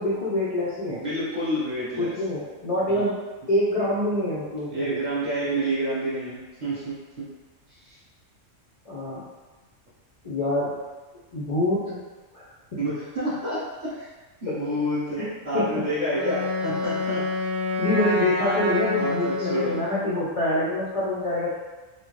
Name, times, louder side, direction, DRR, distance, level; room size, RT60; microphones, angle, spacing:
voice 1, 0.0-1.0 2.0-3.2 3.5-5.0 8.9-9.3 10.2-10.8 11.3-12.0 12.3-12.5 14.5-14.6 15.2-15.3 15.5-15.9 17.8-21.6, left 1 dB, 40° left, -8 dB, 0.5 m, -26 dB
voice 2, 0.9-2.1 2.9-3.0 4.7-7.3 7.8-8.0 12.8-14.1 14.4-17.2 19.0-19.8, equal, 35° right, -10 dB, 1.3 m, -28 dB
Wind instrument woodwind instrument, 16.1-20.1, left 2 dB, 75° right, 1.0 m, -27 dB
4.1 x 2.1 x 3.1 m, 1.2 s
omnidirectional pair, 1.3 m